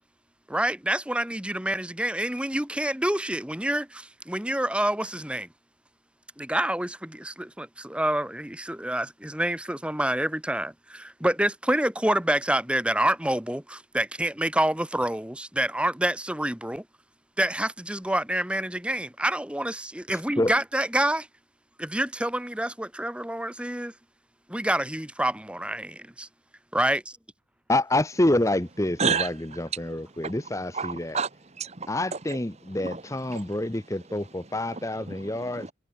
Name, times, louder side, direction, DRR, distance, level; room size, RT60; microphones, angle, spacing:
voice 1, 0.5-5.5 6.4-16.8 17.4-21.3 21.8-23.9 24.5-26.3 26.7-27.2, right 1 dB, 5° right, 1.2 m, -27 dB
voice 2, 27.7-29.3 29.6-31.2 31.9-35.7, left 1 dB, 15° left, 1.0 m, -27 dB
voice 3, 29.0-35.7, right 5 dB, 35° right, 1.4 m, -33 dB
head